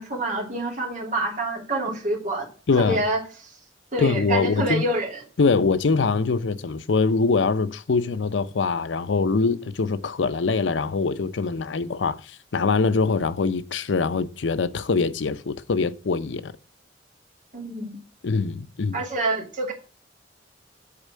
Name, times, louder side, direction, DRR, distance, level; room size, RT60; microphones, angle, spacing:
voice 1, 0.0-2.5 2.8-3.2 3.9-5.2 17.5-18.0 18.9-19.7, right 2 dB, 45° right, 3.1 m, -27 dB
voice 2, 2.7-3.0 4.0-4.8 5.4-16.5 18.2-19.0, left 4 dB, 90° left, 0.6 m, -23 dB
8.5 x 4.6 x 7.4 m
head